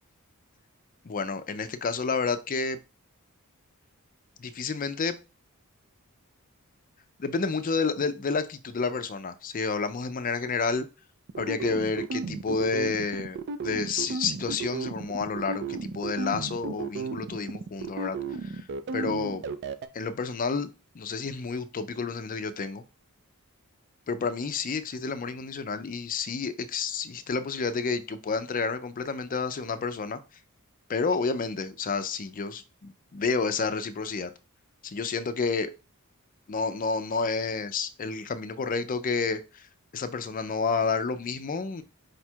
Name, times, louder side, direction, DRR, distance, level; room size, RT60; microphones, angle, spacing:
voice 1, 1.0-2.8 4.4-5.1 7.2-10.9 11.4-13.4 13.6-18.6 18.9-19.4 19.9-20.7 20.9-22.8 24.1-30.2 30.9-34.3 34.8-35.7 36.5-39.7 39.9-41.8, left 4 dB, 40° left, 0.4 m, -30 dB
sound 1, 11.3-19.9, right 4 dB, 50° right, 0.4 m, -34 dB
5.0 x 2.3 x 4.4 m
head